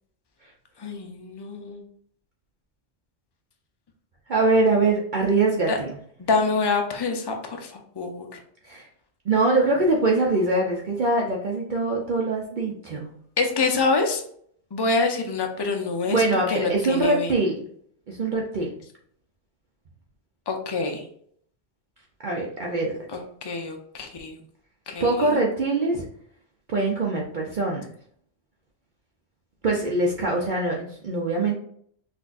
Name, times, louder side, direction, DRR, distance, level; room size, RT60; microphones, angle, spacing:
voice 1, 0.8-1.8 5.7-5.8 6.2-8.4 13.4-14.2 14.7-17.3 20.5-21.0 23.1-24.4 24.9-25.4, left 3 dB, 30° left, 3 dB, 0.4 m, -26 dB
voice 2, 4.3-5.9 8.6-8.9 9.3-13.1 16.1-17.6 18.1-18.7 22.2-23.1 25.0-26.1 26.7-27.8 29.6-31.5, right 2 dB, 50° right, -1 dB, 0.7 m, -23 dB
5.9 x 2.6 x 2.5 m, 0.63 s
omnidirectional pair, 1.2 m